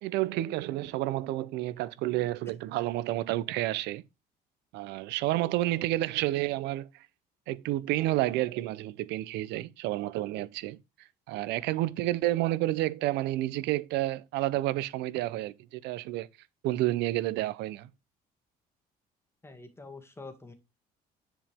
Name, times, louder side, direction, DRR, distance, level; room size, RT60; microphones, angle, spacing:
voice 1, 0.0-4.0 4.7-7.1 7.5-10.8 11.3-16.3 16.6-17.9, right 16 dB, 90° right, 0.7 m, -30 dB
voice 2, 19.4-20.5, left 3 dB, 15° left, 2.1 m, -46 dB
10.0 x 5.2 x 3.5 m
cardioid pair, 110°, 17 cm